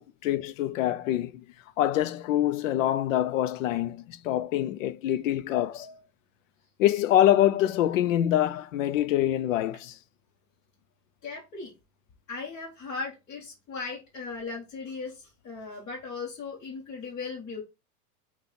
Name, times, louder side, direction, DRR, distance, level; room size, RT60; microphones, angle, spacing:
voice 1, 0.0-1.4 1.8-5.9 6.8-10.0, left 12 dB, 65° left, 0.6 m, -25 dB
voice 2, 11.2-11.7 12.3-17.6, left 4 dB, 25° left, 1.1 m, -38 dB
5.8 x 2.4 x 3.7 m
supercardioid pair, 160°, 43 cm